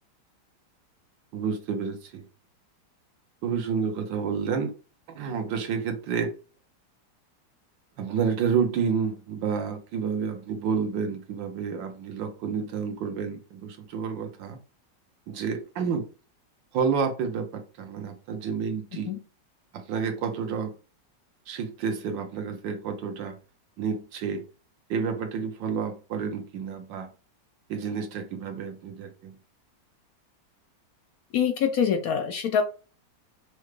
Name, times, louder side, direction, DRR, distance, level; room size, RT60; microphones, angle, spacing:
voice 1, 1.3-2.2 3.4-4.7 5.1-6.3 8.0-14.6 15.3-16.0 16.7-19.1 19.7-20.7 21.5-23.4 23.8-24.4 24.9-27.1 27.7-29.4, right 6 dB, 90° right, 1.5 m, -29 dB
voice 2, 31.3-32.6, left 7 dB, 70° left, 0.9 m, -24 dB
6.1 x 2.2 x 3.2 m
omnidirectional pair, 1.9 m